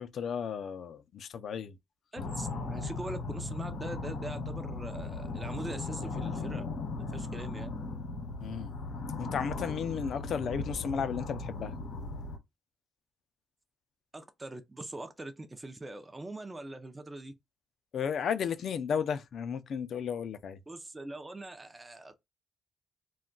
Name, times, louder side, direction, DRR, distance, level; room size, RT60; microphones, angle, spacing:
voice 1, 0.0-1.8 8.4-8.7 9.2-11.7 17.9-20.6, left 7 dB, 60° left, 0.4 m, -34 dB
voice 2, 2.1-6.7 7.1-7.7 14.1-17.3 20.7-22.2, right 2 dB, 20° right, 0.5 m, -42 dB
sound 1, 2.2-12.4, left 3 dB, 80° left, 0.8 m, -37 dB
2.3 x 2.2 x 3.7 m
cardioid pair, 90°, 0 cm